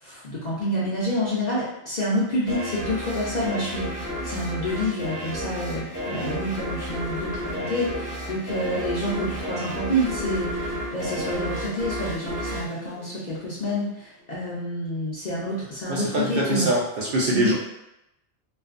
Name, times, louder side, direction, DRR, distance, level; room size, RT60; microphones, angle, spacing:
voice 1, 0.0-16.7 17.3-17.5, equal, 50° left, -7 dB, 0.6 m, -28 dB
sound 1, 2.5-13.7, equal, 20° right, 0.7 m, -32 dB
voice 2, 15.9-17.5, right 1 dB, 60° right, -4 dB, 0.7 m, -24 dB
2.5 x 2.1 x 2.4 m, 0.88 s
omnidirectional pair, 1.2 m